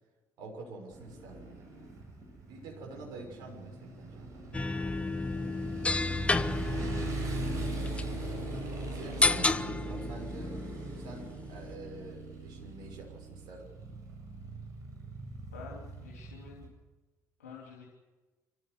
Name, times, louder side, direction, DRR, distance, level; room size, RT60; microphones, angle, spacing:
voice 1, 0.4-1.7 2.5-4.4 8.9-10.6 11.0-13.7, right 3 dB, 55° right, 1 dB, 6.3 m, -47 dB
Motorcycle, 0.9-16.7, right 3 dB, 40° right, 7.9 m, -40 dB
sound 1, 4.5-11.8, left 3 dB, 15° left, 0.8 m, -32 dB
voice 2, 6.4-6.9 15.5-16.7 17.4-18.0, left 5 dB, 75° left, -2 dB, 3.0 m, -49 dB
26.5 x 15.0 x 8.2 m, 1.2 s
figure-of-eight pair, 55°, 8 cm